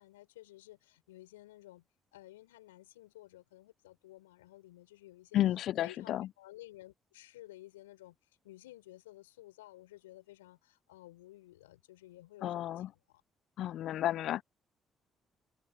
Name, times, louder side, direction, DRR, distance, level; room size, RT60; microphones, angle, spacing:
voice 1, 0.0-1.9 2.1-5.4 5.8-8.2 8.4-13.2, left 16 dB, 85° left, 7.7 m, -54 dB
voice 2, 5.3-6.3 12.4-12.9 13.6-14.4, left 12 dB, 65° left, 1.2 m, -32 dB
hypercardioid pair, 45°, 0 cm